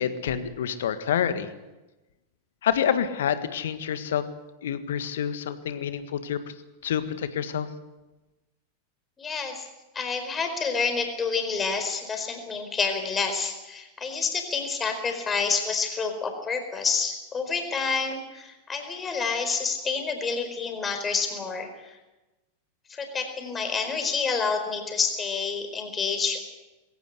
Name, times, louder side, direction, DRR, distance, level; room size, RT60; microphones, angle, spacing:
voice 1, 0.0-1.5 2.6-4.2 4.6-6.4 6.8-7.7, left 9 dB, 60° left, 11 dB, 1.7 m, -27 dB
voice 2, 9.2-9.7 9.9-22.0 22.9-26.4, left 5 dB, 20° left, 6 dB, 4.6 m, -28 dB
21.5 x 17.5 x 8.2 m, 1.1 s
figure-of-eight pair, 90°, 0 cm